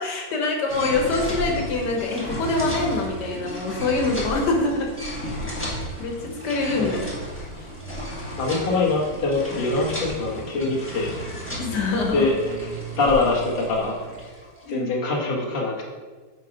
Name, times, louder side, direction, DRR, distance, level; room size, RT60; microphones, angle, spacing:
voice 1, 0.0-4.9 5.6-7.0 7.6-7.7 11.6-12.3 14.7-14.9, left 3 dB, 85° left, 1 dB, 1.7 m, -25 dB
sound 1, 0.7-14.6, equal, 10° left, 1.5 m, -34 dB
sound 2, 3.0-14.2, right 6 dB, 70° right, 1.1 m, -41 dB
voice 2, 8.4-11.1 12.1-12.7 13.0-14.4 14.7-15.8, left 3 dB, 40° left, -2 dB, 1.2 m, -24 dB
8.1 x 3.7 x 4.9 m, 1.4 s
omnidirectional pair, 1.8 m